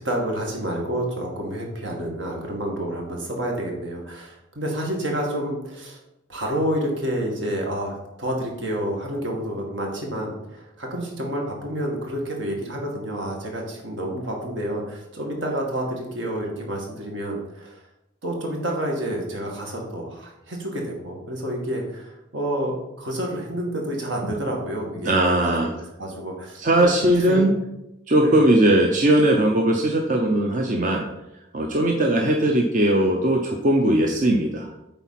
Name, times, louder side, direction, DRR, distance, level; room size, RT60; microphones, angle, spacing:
voice 1, 0.0-6.0 6.3-17.8 18.2-25.7 26.0-27.4 28.2-28.5, right 1 dB, 70° right, 0 dB, 2.0 m, -29 dB
voice 2, 25.0-25.7 26.5-27.5 28.1-31.0 31.5-34.7, right 1 dB, 40° right, 1 dB, 0.7 m, -19 dB
8.8 x 4.1 x 5.8 m, 0.90 s
head